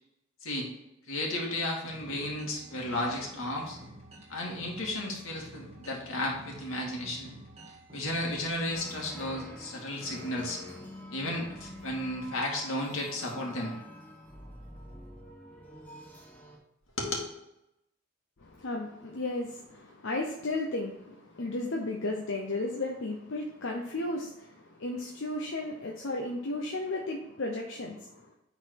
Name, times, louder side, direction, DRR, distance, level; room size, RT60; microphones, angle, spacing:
voice 1, 1.1-3.8 4.3-7.3 7.9-10.6 11.1-13.7 17.0-17.3, left 1 dB, 90° left, -1 dB, 2.2 m, -33 dB
sound 1, 1.8-8.7, right 1 dB, 30° right, 1.8 m, -50 dB
sound 2, 8.3-16.6, equal, 10° left, 1.5 m, -46 dB
voice 2, 18.4-28.3, left 2 dB, 70° left, 0 dB, 0.8 m, -34 dB
8.8 x 4.1 x 4.6 m, 0.85 s
head